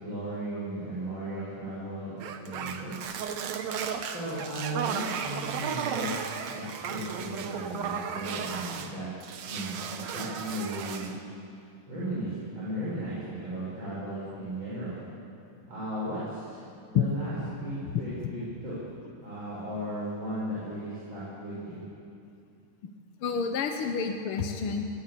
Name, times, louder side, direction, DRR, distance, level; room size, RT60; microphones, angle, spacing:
voice 1, 0.0-2.9 4.0-6.1 6.5-9.1 9.4-11.1 11.9-15.0 15.7-16.6 16.9-18.8 19.2-21.8, right 1 dB, 35° right, -9 dB, 7.5 m, -36 dB
sound 1, 2.2-8.9 9.2-11.2, right 7 dB, 65° right, 2.3 m, -35 dB
voice 2, 17.8-18.3 23.2-24.8, left 6 dB, 60° left, 4 dB, 1.6 m, -29 dB
22.0 x 18.5 x 8.5 m, 2.5 s
omnidirectional pair, 3.6 m